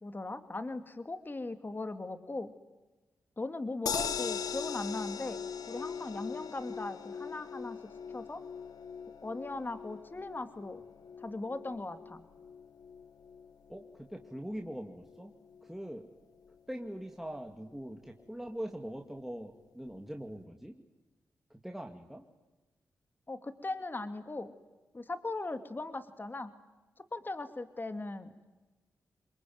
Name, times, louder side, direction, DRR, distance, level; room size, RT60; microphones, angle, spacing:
voice 1, 0.0-2.5 3.4-7.8 8.1-8.4 9.2-10.8 11.2-12.2 23.3-24.5 24.9-26.5 27.1-28.4, left 2 dB, 30° left, 9 dB, 2.4 m, -39 dB
sound 1, 3.9-16.1 16.5-16.6 16.9-17.0, left 7 dB, 85° left, 1.6 m, -41 dB
voice 2, 13.7-15.3 15.6-16.1 16.7-20.8 21.5-22.2, equal, 5° right, 3 dB, 2.4 m, -42 dB
26.0 x 22.5 x 9.5 m, 1.1 s
cardioid pair, 55°, 6 cm